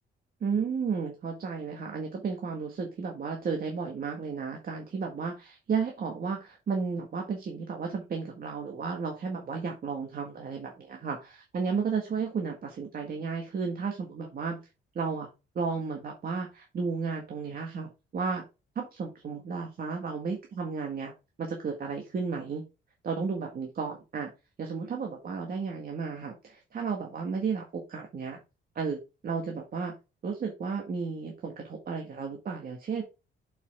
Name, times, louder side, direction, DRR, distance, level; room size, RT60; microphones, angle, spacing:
voice 1, 0.4-14.6 15.0-15.3 15.6-18.4 18.8-21.1 21.4-22.6 23.0-24.3 24.6-28.4 28.8-29.9 30.2-33.0, right 5 dB, 45° right, 2 dB, 1.7 m, -33 dB
7.0 x 5.7 x 3.7 m, 0.27 s
cardioid pair, 110°, 20 cm